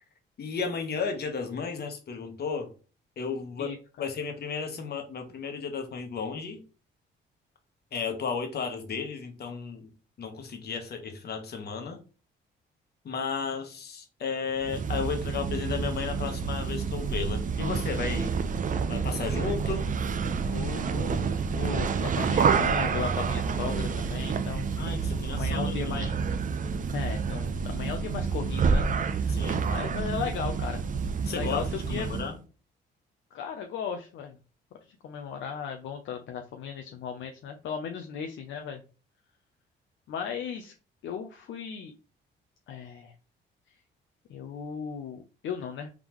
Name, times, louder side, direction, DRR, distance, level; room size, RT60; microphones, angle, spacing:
voice 1, 0.4-2.7 3.2-6.6 7.9-9.9 10.2-12.0 13.0-18.3 18.9-19.9 24.7-26.2 29.3-29.7 31.2-32.4, left 5 dB, 55° left, 5 dB, 1.2 m, -34 dB
voice 2, 3.6-4.1 20.5-24.7 25.3-26.1 26.9-29.4 29.7-30.8 31.3-32.1 33.3-34.4 35.0-38.8 40.1-40.7 41.0-41.9 42.7-43.1 44.3-45.9, left 7 dB, 70° left, 4 dB, 0.6 m, -36 dB
sound 1, 14.6-32.3, right 5 dB, 40° right, 0.5 m, -28 dB
3.6 x 3.6 x 3.0 m, 0.35 s
cardioid pair, 90°, 20 cm